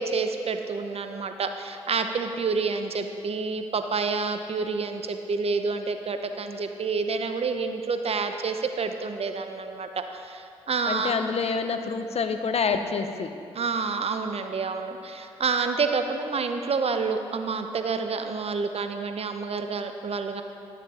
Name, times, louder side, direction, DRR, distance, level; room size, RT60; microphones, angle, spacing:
voice 1, 0.0-11.1 13.5-20.4, right 4 dB, 55° right, 7 dB, 0.8 m, -28 dB
voice 2, 10.9-13.3, left 5 dB, 55° left, 8 dB, 0.7 m, -27 dB
12.0 x 7.1 x 4.2 m, 2.5 s
supercardioid pair, 45°, 12 cm